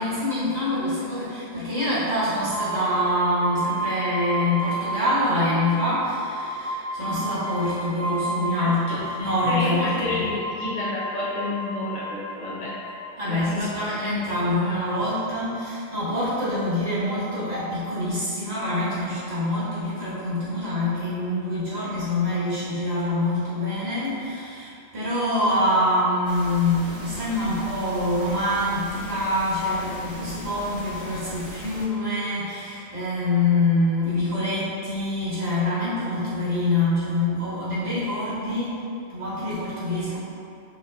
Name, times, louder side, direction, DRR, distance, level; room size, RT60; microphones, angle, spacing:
voice 1, 0.0-10.4 13.2-38.8 39.1-40.2, left 1 dB, 65° right, -12 dB, 1.8 m, -25 dB
sound 1, 2.5-14.9, right 1 dB, 75° left, 0.9 m, -32 dB
voice 2, 8.6-9.0 9.5-13.0 13.3-13.7 14.0-14.3 14.6-14.7, left 2 dB, 40° left, -7 dB, 0.8 m, -30 dB
sound 2, 26.2-31.8, right 1 dB, 85° right, 1.4 m, -40 dB
5.7 x 2.6 x 2.3 m, 2.5 s
omnidirectional pair, 1.2 m